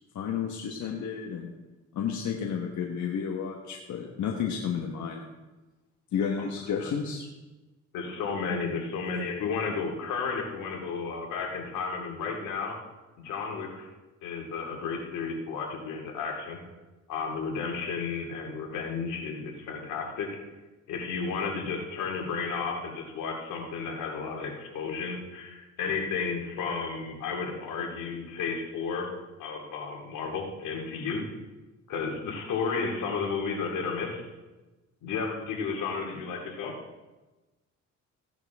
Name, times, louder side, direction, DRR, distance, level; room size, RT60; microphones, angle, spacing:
voice 1, 0.1-1.5 1.9-5.2 6.1-7.3, left 7 dB, 70° left, 1 dB, 1.3 m, -31 dB
voice 2, 7.9-12.7 13.2-13.9 14.2-16.6 17.1-20.3 20.9-29.1 29.4-31.2 31.9-34.3 35.0-36.7, left 5 dB, 90° left, 1 dB, 2.3 m, -33 dB
15.5 x 10.5 x 3.5 m, 1.1 s
cardioid pair, 90°, 30 cm